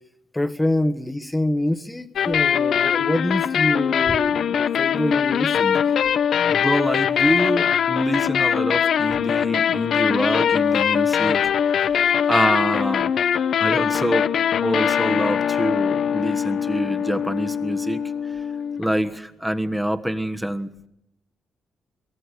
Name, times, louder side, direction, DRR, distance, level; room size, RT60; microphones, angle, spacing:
voice 1, 0.3-5.9, left 1 dB, 10° left, 8 dB, 1.3 m, -25 dB
sound 1, 2.2-19.1, left 8 dB, 65° left, 0.8 m, -22 dB
voice 2, 6.5-11.5 12.3-13.1 13.6-14.3 14.6-18.1 18.8-20.9, equal, 5° right, 7 dB, 1.4 m, -25 dB
23.5 x 17.0 x 8.2 m, 0.80 s
cardioid pair, 80°, 0 cm